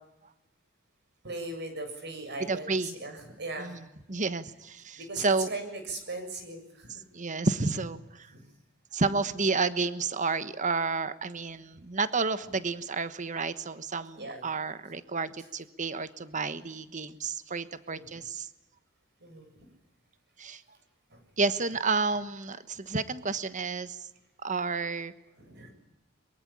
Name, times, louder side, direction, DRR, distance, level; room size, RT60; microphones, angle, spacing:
voice 1, 1.2-3.7 5.0-6.9 8.3-8.4 14.2-14.4 17.9-18.0 19.2-19.5 21.1-21.2 25.4-25.7, right 2 dB, 55° right, 7 dB, 7.4 m, -39 dB
voice 2, 2.5-2.9 3.6-3.8 4.1-5.5 7.1-8.3 8.9-18.5 20.4-20.6 21.4-24.0 24.4-25.1, right 4 dB, 40° right, 12 dB, 1.2 m, -30 dB
23.0 x 23.0 x 8.8 m, 0.89 s
head